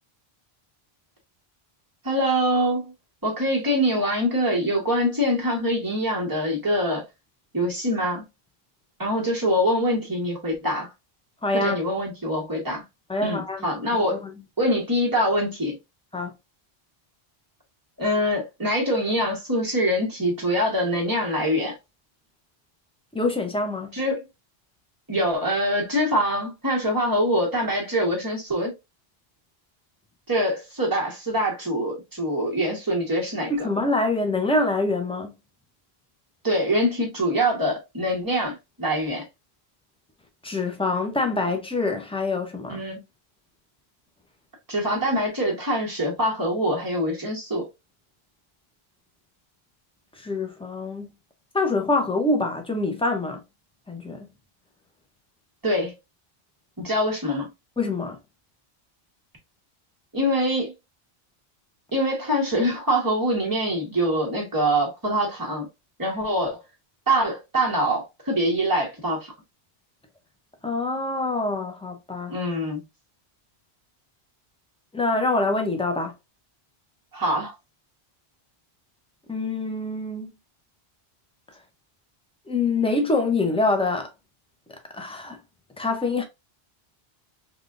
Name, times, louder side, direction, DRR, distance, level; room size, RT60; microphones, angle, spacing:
voice 1, 2.0-2.9 3.2-7.0 7.5-8.2 9.0-10.9 11.5-12.8 13.2-14.2 14.6-15.8 18.0-21.7 23.9-24.2 25.1-28.7 30.3-33.7 36.4-39.2 42.7-43.0 44.7-47.7 55.6-55.9 56.8-57.5 60.1-60.7 61.9-65.7 66.0-66.6 67.1-69.3 72.3-72.8 77.1-77.5, equal, 20° right, 1.3 m, -24 dB
voice 2, 11.4-11.8 13.1-14.3 16.1-16.3 23.1-24.0 33.5-35.3 40.4-42.8 50.2-51.1 51.5-53.4 53.9-54.3 57.8-58.2 70.6-72.3 74.9-76.1 79.3-80.3 82.5-84.1 84.7-85.4 85.8-86.2, left 2 dB, 10° left, 0.4 m, -25 dB
3.4 x 2.4 x 2.4 m
omnidirectional pair, 1.0 m